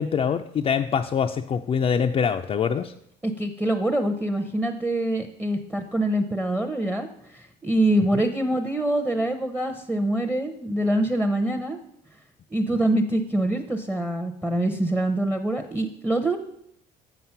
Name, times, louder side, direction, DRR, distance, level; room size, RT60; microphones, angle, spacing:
voice 1, 0.0-2.9 8.1-8.2, left 7 dB, 35° left, 5 dB, 0.4 m, -24 dB
voice 2, 3.2-7.1 7.3-11.8 12.5-16.4, right 1 dB, 5° right, 7 dB, 0.7 m, -25 dB
7.2 x 5.8 x 5.7 m, 0.73 s
cardioid pair, 110°, 17 cm